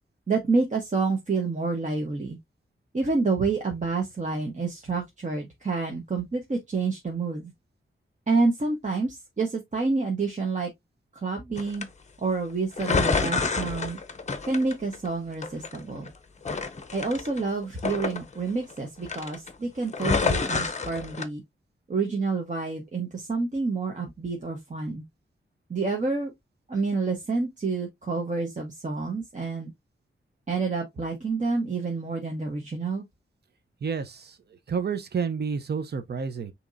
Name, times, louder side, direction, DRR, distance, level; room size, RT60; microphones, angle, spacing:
voice 1, 0.3-2.4 2.9-7.5 8.3-10.7 11.1-11.8 12.2-14.0 14.5-16.1 16.9-21.4 21.9-25.0 25.7-26.3 26.7-29.7 30.5-33.0, right 4 dB, 35° right, 1.1 m, -28 dB
sound 1, 11.6-11.8 12.8-15.1 15.4-16.1 16.5-18.8 19.1-19.5 19.9-21.2, left 4 dB, 35° left, 0.7 m, -28 dB
voice 2, 33.8-34.4 34.7-36.5, right 6 dB, 50° right, 0.7 m, -30 dB
6.9 x 3.0 x 2.5 m
wide cardioid pair, 145°, 21 cm